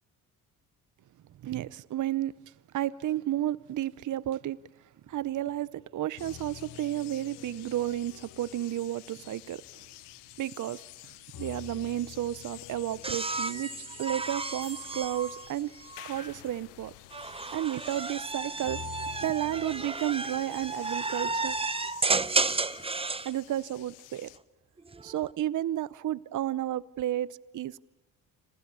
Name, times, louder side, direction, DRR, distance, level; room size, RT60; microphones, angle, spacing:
voice 1, 1.4-4.6 5.1-9.6 10.4-15.7 16.0-16.9 17.5-18.8 19.2-21.5 23.2-24.3 25.0-27.9, right 12 dB, 45° right, 0.7 m, -32 dB
sound 1, 5.1-5.8 6.2-10.7 11.3-17.0 18.6-19.9, left 11 dB, 50° left, 1.3 m, -50 dB
sound 2, 6.2-24.4, left 19 dB, 80° left, 1.1 m, -50 dB
sound 3, 13.0-16.3 17.1-23.3 24.8-25.3, right 3 dB, 15° right, 0.8 m, -32 dB
29.5 x 26.5 x 6.9 m
supercardioid pair, 65°, 41 cm